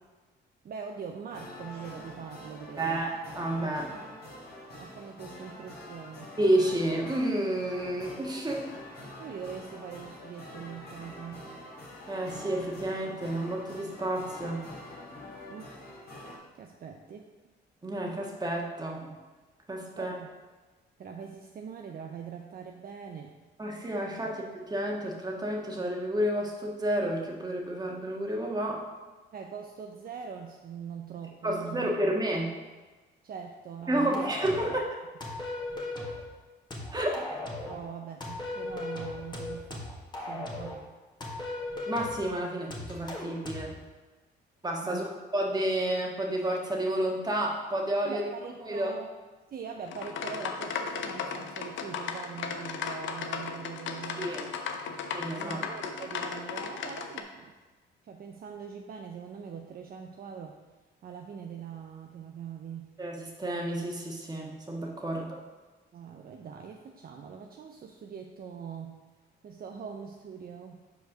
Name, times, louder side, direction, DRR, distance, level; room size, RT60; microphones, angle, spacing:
voice 1, 0.6-3.0 3.7-4.0 4.8-6.3 9.2-11.5 15.5-15.8 16.5-17.3 20.0-20.3 21.0-23.4 24.2-24.3 29.3-31.9 33.2-34.3 36.0-36.1 37.7-39.9 40.3-40.8 44.8-45.1 48.0-49.1 49.5-54.6 54.9-55.0 55.4-57.5 58.0-60.6 61.0-62.9 65.9-69.0 69.4-70.8, right 6 dB, 50° right, 2 dB, 0.6 m, -42 dB
sound 1, 1.3-16.4, left 1 dB, 50° left, 2.0 m, -46 dB
voice 2, 2.8-3.9 6.4-8.7 12.1-14.6 17.8-19.1 19.7-20.1 23.6-28.9 31.4-32.6 33.9-34.9 36.9-37.3 41.9-43.7 44.6-45.0 45.3-48.2 48.6-48.9 54.2-54.4 55.1-55.6 63.0-65.4, right 1 dB, 20° right, -1 dB, 1.5 m, -30 dB
sound 2, 34.1-34.8 35.2-36.3 36.7-37.8 38.2-40.8 41.2-42.3 42.7-43.7, left 2 dB, 20° left, 1.5 m, -37 dB
sound 3, 49.9-57.2, left 6 dB, 75° left, 0.7 m, -36 dB
5.3 x 4.6 x 6.0 m, 1.3 s
cardioid pair, 90°, 20 cm